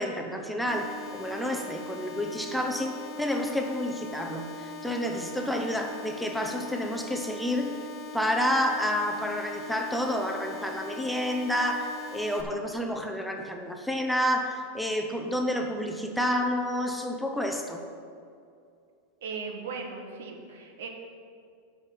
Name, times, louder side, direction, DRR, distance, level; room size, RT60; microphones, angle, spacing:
voice 1, 0.0-7.7 8.1-17.8, equal, ahead, 2 dB, 0.7 m, -29 dB
sound 1, 0.7-12.4, left 2 dB, 20° left, 1.1 m, -41 dB
voice 2, 19.2-20.9, right 4 dB, 80° right, 3 dB, 1.6 m, -37 dB
8.8 x 5.6 x 7.2 m, 2.4 s
supercardioid pair, 150°, 0 cm